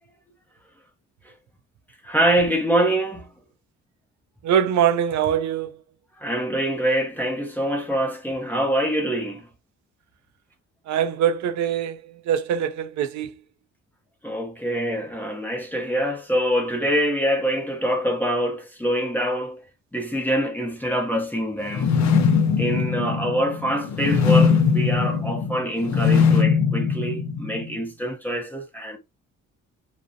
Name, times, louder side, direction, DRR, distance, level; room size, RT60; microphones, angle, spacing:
voice 1, 2.0-3.3 6.2-9.5 14.2-19.6 19.9-21.9 22.6-29.0, equal, 5° left, 0.6 m, -25 dB
voice 2, 4.4-5.8 10.9-13.3, right 9 dB, 65° right, 0.5 m, -23 dB
sound 1, 21.7-27.7, left 6 dB, 65° left, 0.7 m, -21 dB
2.4 x 2.0 x 2.6 m
cardioid pair, 90°, 30 cm